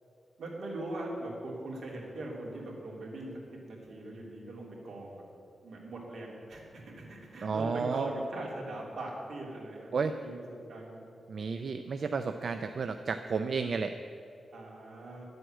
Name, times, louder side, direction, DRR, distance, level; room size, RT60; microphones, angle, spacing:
voice 1, 0.4-3.3 3.7-5.2 5.6-11.0 14.5-15.2, right 1 dB, 75° right, -2 dB, 3.0 m, -41 dB
voice 2, 7.4-8.1 9.9-10.1 11.3-13.9, right 5 dB, 55° right, 8 dB, 0.5 m, -32 dB
11.0 x 7.9 x 9.0 m, 2.6 s
wide cardioid pair, 145°, 0 cm